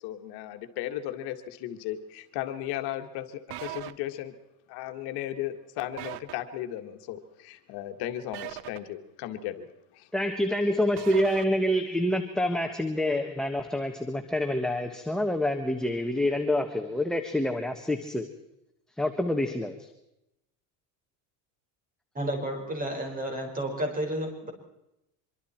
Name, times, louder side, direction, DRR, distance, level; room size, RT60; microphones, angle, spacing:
voice 1, 0.0-4.3 4.7-10.1, left 12 dB, 70° left, 1.9 m, -36 dB
sound 1, 3.5-3.9 6.0-6.3 8.3-8.8 11.0-11.5, right 14 dB, 75° right, 1.2 m, -37 dB
voice 2, 10.1-18.3 19.0-19.9, left 1 dB, ahead, 1.1 m, -27 dB
voice 3, 22.1-24.5, right 1 dB, 20° right, 5.2 m, -31 dB
25.0 x 24.0 x 4.4 m
cardioid pair, 145°, 41 cm